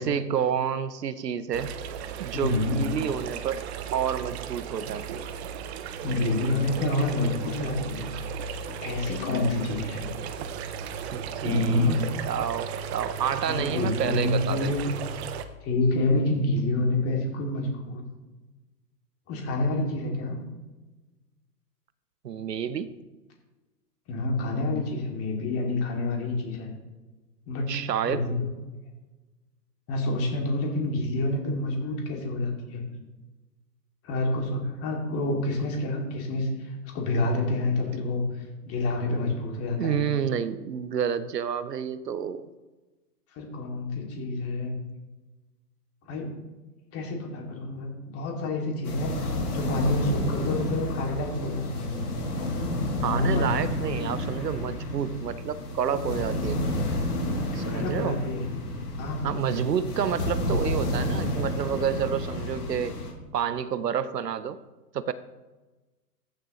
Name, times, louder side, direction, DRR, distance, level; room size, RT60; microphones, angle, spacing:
voice 1, 0.0-1.8 2.2-3.7 3.9-5.2 11.1-11.9 12.3-14.7 22.2-22.9 27.7-28.3 39.8-42.5 53.0-56.8 57.5-58.2 59.2-63.0 63.3-64.6 64.9-65.1, right 8 dB, 90° right, 14 dB, 0.7 m, -29 dB
sound 1, 1.5-15.4, right 7 dB, 40° right, 0.8 m, -35 dB
voice 2, 2.3-2.8 6.0-8.0 8.7-10.1 11.4-12.0 13.5-14.8 15.6-18.0 19.3-20.4 24.1-26.7 27.5-27.8 28.1-28.5 29.9-32.8 34.0-40.1 43.3-44.8 46.1-46.3 46.9-51.9 53.0-53.5 57.5-58.5 59.0-59.6, left 2 dB, 30° left, 0 dB, 2.5 m, -28 dB
sound 2, 48.8-63.1, left 1 dB, 70° left, 2.9 m, -30 dB
14.0 x 6.6 x 3.1 m, 1.2 s
hypercardioid pair, 120°, 47 cm